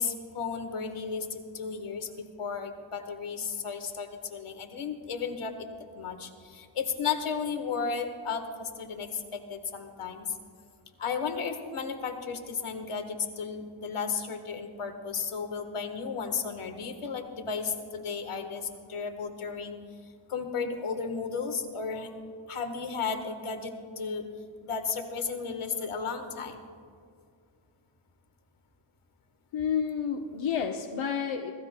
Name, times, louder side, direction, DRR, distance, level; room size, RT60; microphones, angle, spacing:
voice 1, 0.0-5.7 5.9-10.3 11.0-19.8 20.3-22.1 22.5-24.3 24.6-26.6, left 5 dB, 85° left, 6 dB, 1.4 m, -34 dB
voice 2, 29.5-31.5, left 7 dB, 65° left, 2 dB, 0.7 m, -30 dB
25.5 x 15.0 x 2.2 m, 2.2 s
wide cardioid pair, 175°, 49 cm